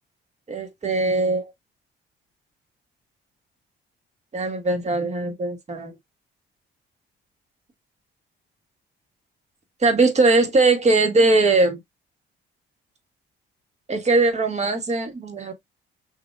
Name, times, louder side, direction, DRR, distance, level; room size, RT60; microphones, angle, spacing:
voice 1, 0.5-1.5 4.3-5.9 9.8-11.8 13.9-15.5, right 3 dB, 35° right, 1.5 m, -20 dB
6.3 x 2.7 x 2.4 m
cardioid pair, 90°, 20 cm